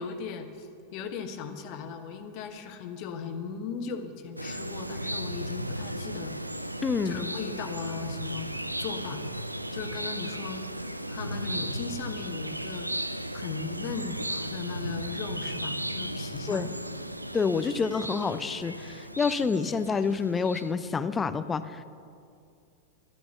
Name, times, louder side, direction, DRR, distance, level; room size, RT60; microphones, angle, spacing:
voice 1, 0.0-6.3 7.0-8.5 8.8-9.2 9.7-10.7 11.1-12.9 13.3-16.7, left 6 dB, 45° left, 7 dB, 1.2 m, -37 dB
sound 1, 4.4-20.7, right 1 dB, 85° right, 0.5 m, -35 dB
voice 2, 6.8-7.2 16.5-16.7 17.3-21.8, left 5 dB, 15° left, 13 dB, 0.6 m, -28 dB
12.0 x 12.0 x 6.9 m, 2.4 s
figure-of-eight pair, 90°, 0 cm